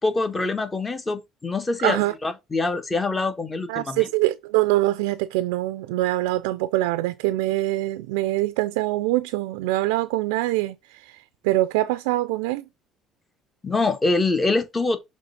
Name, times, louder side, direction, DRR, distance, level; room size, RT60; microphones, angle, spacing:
voice 1, 0.0-4.1 13.6-15.0, left 3 dB, 25° left, 1.4 m, -24 dB
voice 2, 1.8-2.1 3.7-12.6, right 17 dB, 90° right, 0.4 m, -24 dB
6.3 x 3.2 x 5.7 m
supercardioid pair, 85°, 0 cm